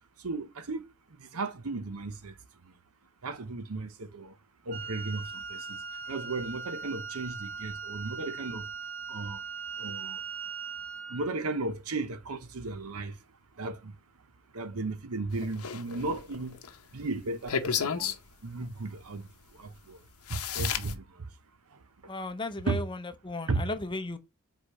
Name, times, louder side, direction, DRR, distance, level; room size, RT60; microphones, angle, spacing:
voice 1, 0.2-0.9 1.2-2.4 2.6-2.7 3.2-4.4 4.6-8.7 9.1-9.4 9.8-10.2 11.1-13.2 13.5-13.9 14.5-16.6 16.9-20.0 20.3-21.3 21.7-22.1 22.7-22.8 23.5-23.6, right 3 dB, 75° right, 0.8 m, -35 dB
Wind instrument woodwind instrument, 4.7-11.4, right 6 dB, 40° right, 1.6 m, -39 dB
sound 1, 15.3-16.7 17.5-18.2 19.7-19.8 20.3-20.9, left 7 dB, 75° left, 0.8 m, -32 dB
voice 2, 22.1-24.2, left 2 dB, 20° left, 0.7 m, -35 dB
5.0 x 4.0 x 5.4 m
head